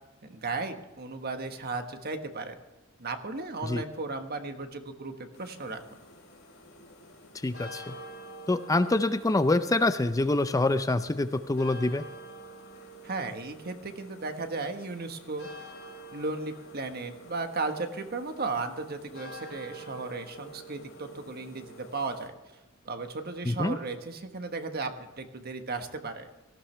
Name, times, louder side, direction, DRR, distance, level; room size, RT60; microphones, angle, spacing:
voice 1, 0.2-2.6 3.0-5.8 13.0-15.5 16.1-22.3 22.8-26.3, right 3 dB, 50° right, 6 dB, 1.4 m, -35 dB
sound 1, 5.3-22.3, right 1 dB, 70° left, 3.5 m, -48 dB
voice 2, 7.4-8.0 8.5-12.0 23.5-23.8, left 2 dB, 15° left, 10 dB, 0.4 m, -26 dB
18.0 x 14.5 x 3.4 m, 1.1 s
head